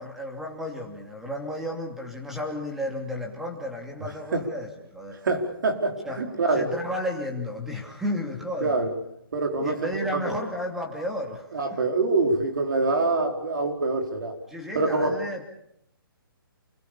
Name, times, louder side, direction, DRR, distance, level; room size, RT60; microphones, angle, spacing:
voice 1, 0.0-5.2 6.0-6.2 6.5-8.8 9.6-11.8 14.5-15.4, left 1 dB, ahead, 1 dB, 2.7 m, -33 dB
voice 2, 5.2-6.7 8.6-8.9 9.3-9.7 11.5-14.3 14.7-15.1, right 3 dB, 55° right, 4 dB, 4.9 m, -25 dB
28.5 x 21.5 x 7.2 m, 0.76 s
hypercardioid pair, 170°, 12 cm